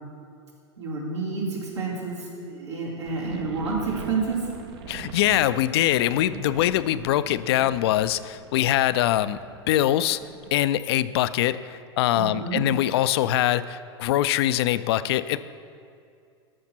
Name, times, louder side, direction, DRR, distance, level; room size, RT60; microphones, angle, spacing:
voice 1, 0.8-4.5 12.1-12.6, right 4 dB, 90° right, -5 dB, 2.5 m, -29 dB
sound 1, 3.0-10.7, right 6 dB, 70° right, 0.7 m, -43 dB
voice 2, 4.9-9.4 9.7-10.2 10.5-15.4, left 13 dB, 65° left, 15 dB, 0.4 m, -23 dB
14.0 x 5.9 x 4.4 m, 2.4 s
hypercardioid pair, 90°, 15 cm